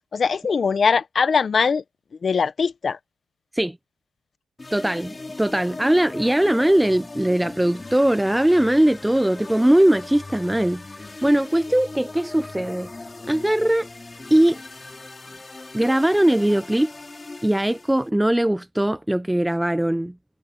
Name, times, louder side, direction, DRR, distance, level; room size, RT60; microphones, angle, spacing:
voice 1, 0.1-1.8 2.2-3.0, left 5 dB, 35° left, 1.2 m, -21 dB
sound 1, 4.6-18.1, left 3 dB, 20° left, 5.4 m, -39 dB
voice 2, 4.7-10.8 11.2-12.9 13.3-13.9 14.3-14.6 15.7-16.9 17.4-20.1, right 1 dB, 5° right, 0.6 m, -20 dB
cardioid pair, 120°, 0 cm